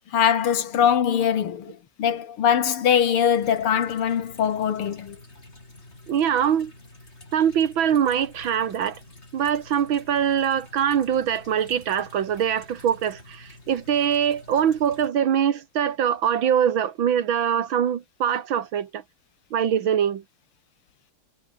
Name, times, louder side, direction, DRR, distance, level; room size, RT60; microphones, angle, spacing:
voice 1, 0.1-5.2, left 8 dB, 80° left, 2.6 m, -22 dB
sound 1, 3.3-15.1, left 2 dB, 30° left, 5.3 m, -48 dB
voice 2, 6.1-6.7 7.3-9.0 9.3-19.0 19.5-20.2, right 9 dB, 65° right, 2.1 m, -23 dB
omnidirectional pair, 2.4 m